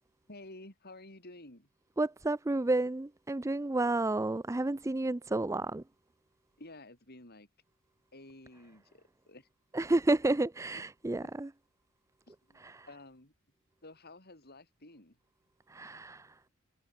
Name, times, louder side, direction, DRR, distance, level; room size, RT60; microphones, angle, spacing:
voice 1, 0.3-1.7 6.6-7.5 8.1-9.5 10.7-10.8 11.2-11.3 12.3-13.3 13.8-15.2, left 2 dB, 45° left, 7.3 m, -52 dB
voice 2, 2.0-5.8 9.7-11.5 12.6-12.9 15.7-16.3, right 2 dB, 15° right, 0.4 m, -31 dB
head